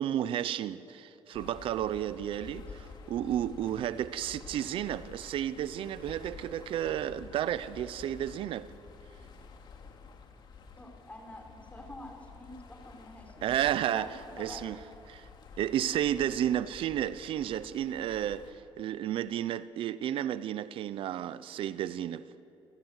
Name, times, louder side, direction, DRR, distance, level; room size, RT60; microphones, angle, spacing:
voice 1, 0.0-8.7 13.4-14.8 15.1-15.3 15.6-22.3, right 11 dB, 75° right, 0.8 m, -32 dB
sound 1, 1.3-18.5, left 5 dB, 55° left, 2.7 m, -50 dB
voice 2, 10.8-13.5 13.9-14.1 14.4-14.6, left 1 dB, 15° left, 5.0 m, -47 dB
29.5 x 15.5 x 8.3 m
cardioid pair, 100°, 9 cm